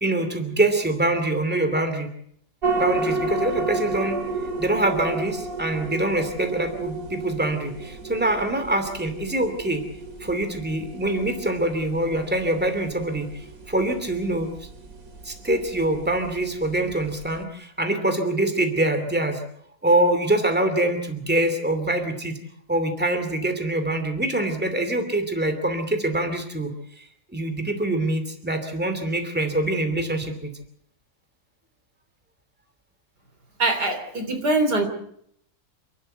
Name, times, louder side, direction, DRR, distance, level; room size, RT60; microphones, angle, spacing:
voice 1, 0.0-2.1 2.8-4.2 4.6-9.8 10.2-14.5 15.2-19.4 19.8-22.3 22.7-26.7 27.0-27.1 27.3-30.5, right 1 dB, 5° right, 7 dB, 2.6 m, -24 dB
sound 1, 2.6-17.4, right 3 dB, 60° right, 2.8 m, -32 dB
voice 2, 33.6-34.9, right 2 dB, 85° right, 6 dB, 3.9 m, -23 dB
28.5 x 12.5 x 8.0 m, 0.70 s
omnidirectional pair, 1.7 m